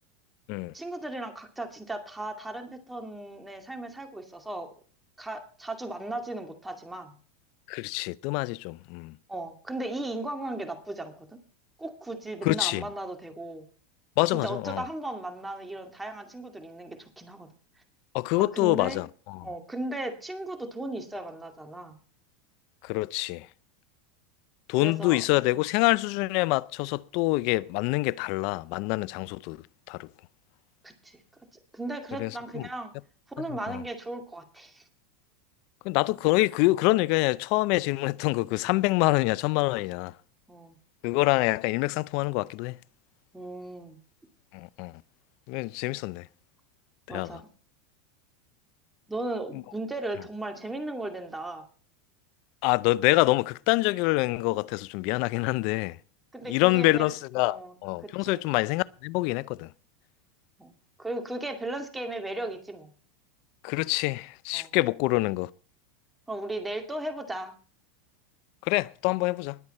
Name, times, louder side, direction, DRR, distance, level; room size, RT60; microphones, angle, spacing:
voice 1, 0.7-4.7 5.2-7.1 9.3-11.4 11.8-13.7 14.4-17.5 18.4-19.0 19.4-22.0 24.8-25.2 30.8-31.2 31.7-32.9 33.3-34.8 40.5-40.8 43.3-44.0 47.1-47.5 49.1-51.6 56.3-57.7 58.0-58.4 60.6-62.9 64.5-64.7 66.3-67.5, right 2 dB, 5° right, 2.3 m, -36 dB
voice 2, 7.7-9.1 12.4-12.8 14.2-14.8 18.1-19.5 22.8-23.5 24.7-29.6 29.9-30.1 32.2-32.3 32.6-32.7 33.7-33.8 35.8-40.1 41.0-42.8 44.5-44.9 45.5-46.2 47.1-47.3 52.6-56.0 56.5-59.7 63.6-65.5 68.6-69.6, left 21 dB, 55° left, 0.5 m, -26 dB
20.5 x 8.2 x 4.3 m
supercardioid pair, 125°, 0 cm